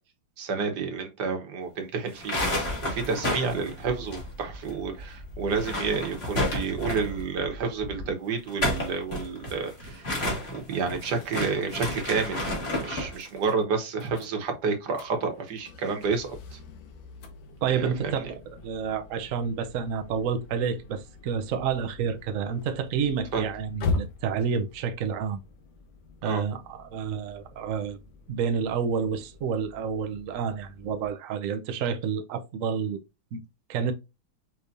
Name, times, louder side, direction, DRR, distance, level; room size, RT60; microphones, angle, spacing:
voice 1, 0.4-2.4 2.8-10.0 10.5-12.4 12.8-16.6 17.7-18.3 23.3-23.4 26.2-26.4, right 5 dB, 60° right, 1.6 m, -30 dB
sound 1, 2.1-4.7 5.0-5.1 5.4-7.2 8.3-13.2, left 1 dB, 30° left, 2.1 m, -31 dB
sound 2, 2.3-8.1, equal, 55° left, 1.7 m, -42 dB
sound 3, 13.2-31.1, left 4 dB, 75° left, 1.7 m, -41 dB
voice 2, 17.6-25.4 26.2-28.0 28.3-33.0 33.3-33.4 33.7-33.9, right 6 dB, 80° right, 0.7 m, -29 dB
5.8 x 3.3 x 2.6 m
omnidirectional pair, 2.2 m